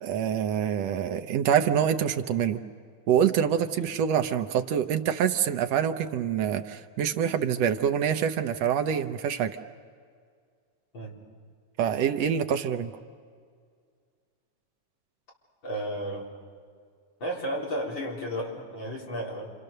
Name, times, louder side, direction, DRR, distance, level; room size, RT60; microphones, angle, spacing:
voice 1, 0.0-2.6 3.1-9.6 11.8-12.9, right 8 dB, 70° right, 7 dB, 1.8 m, -26 dB
voice 2, 15.6-16.2 17.2-19.5, equal, 40° left, -3 dB, 4.5 m, -33 dB
29.5 x 26.5 x 6.7 m, 2.1 s
omnidirectional pair, 3.4 m